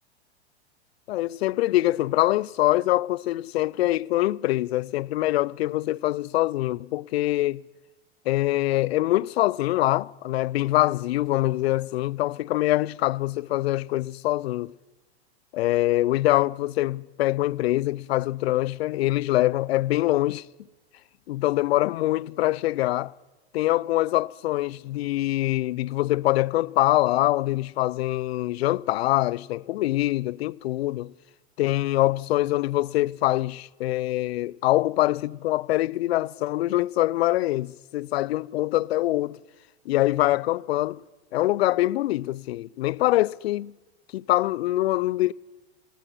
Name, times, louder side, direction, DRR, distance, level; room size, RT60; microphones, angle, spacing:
voice 1, 1.1-7.7 8.3-14.7 15.5-20.5 21.3-23.1 23.5-31.1 31.6-39.4 39.9-41.0 41.3-43.7 44.1-45.3, left 16 dB, 65° left, 0.6 m, -24 dB
18.5 x 16.0 x 9.3 m
hypercardioid pair, 105°, 33 cm